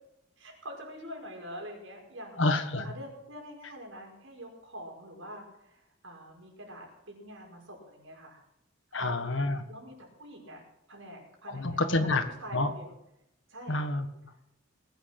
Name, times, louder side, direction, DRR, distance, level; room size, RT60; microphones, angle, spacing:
voice 1, 0.4-2.5 2.8-8.4 8.9-9.2 9.7-10.6 10.9-12.9 13.5-13.8, equal, 90° right, 0 dB, 5.5 m, -45 dB
voice 2, 2.4-2.9 8.9-9.6 11.5-12.2 12.5-12.7 13.7-14.1, left 2 dB, 70° left, 7 dB, 1.7 m, -28 dB
20.0 x 9.3 x 6.0 m, 0.84 s
head